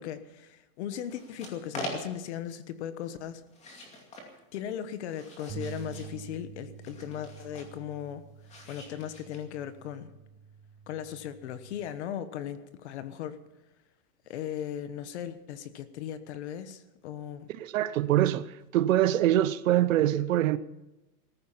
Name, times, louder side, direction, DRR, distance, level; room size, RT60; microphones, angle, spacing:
voice 1, 0.0-3.4 4.5-8.2 8.7-10.1 10.9-13.4 14.3-17.5, left 10 dB, 45° left, 1.3 m, -37 dB
sound 1, 0.9-2.4 3.5-4.3 4.8-6.2 6.8-7.8 8.4-9.7, left 1 dB, 15° left, 2.5 m, -43 dB
sound 2, 5.5-11.7, right 8 dB, 5° right, 4.5 m, -47 dB
voice 2, 17.5-20.6, right 13 dB, 55° right, 0.8 m, -24 dB
17.0 x 14.5 x 5.7 m
supercardioid pair, 175°, 48 cm